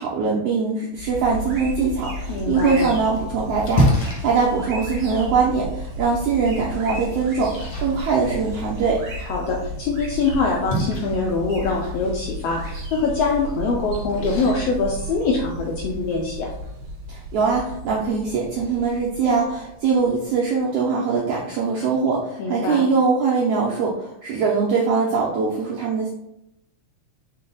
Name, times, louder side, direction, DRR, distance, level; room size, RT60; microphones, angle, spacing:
voice 1, 0.0-9.0 17.1-26.1, right 5 dB, 75° right, -4 dB, 1.4 m, -22 dB
sound 1, 0.9-20.3, equal, 50° right, 2.1 m, -33 dB
voice 2, 2.3-2.9 9.3-16.5 22.4-22.8, left 4 dB, 85° left, -1 dB, 1.4 m, -24 dB
Splash splatter, 2.9-15.7, equal, 60° left, 1.2 m, -31 dB
5.5 x 2.2 x 3.9 m, 0.80 s
omnidirectional pair, 3.4 m